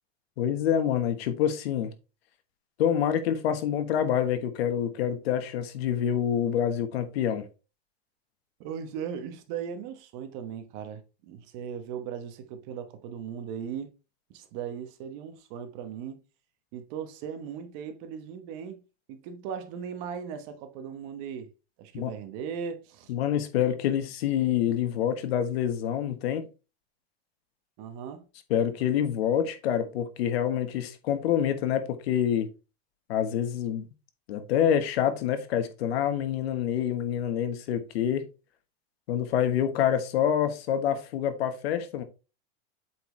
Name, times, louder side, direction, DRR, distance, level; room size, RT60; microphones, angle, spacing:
voice 1, 0.4-1.9 2.8-7.5 21.9-22.1 23.1-26.5 28.5-32.5 33.1-33.8 34.3-38.3 39.1-42.0, left 9 dB, 75° left, 1.4 m, -27 dB
voice 2, 8.6-13.9 14.3-16.2 16.7-18.8 19.1-21.5 21.8-23.1 27.8-28.3 28.9-29.0, right 7 dB, 45° right, 1.1 m, -38 dB
8.1 x 4.5 x 3.2 m
supercardioid pair, 160°, 31 cm